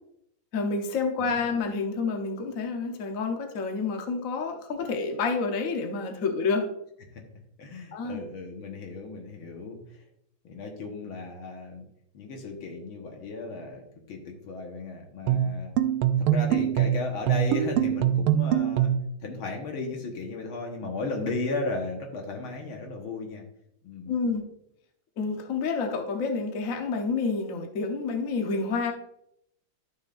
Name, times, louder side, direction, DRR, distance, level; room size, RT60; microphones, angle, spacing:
voice 1, 0.5-6.7 7.9-8.2 24.1-24.4 25.2-28.9, left 4 dB, 50° left, 3 dB, 1.1 m, -29 dB
voice 2, 7.6-10.0 10.4-11.9 12.1-15.8 16.2-18.9 19.2-23.5 23.8-24.1, left 3 dB, 75° left, 2 dB, 2.1 m, -35 dB
sound 1, 15.3-19.1, right 10 dB, 85° right, 1.4 m, -24 dB
11.5 x 6.4 x 2.6 m, 0.76 s
omnidirectional pair, 2.3 m